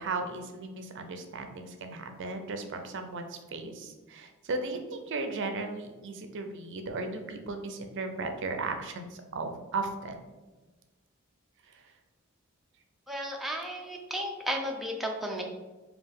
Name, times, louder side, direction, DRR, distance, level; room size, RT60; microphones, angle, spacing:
voice 1, 0.0-10.2, right 3 dB, 60° right, 6 dB, 0.5 m, -36 dB
voice 2, 13.1-15.4, equal, ahead, 0 dB, 0.5 m, -34 dB
5.3 x 2.4 x 3.5 m, 1.2 s
head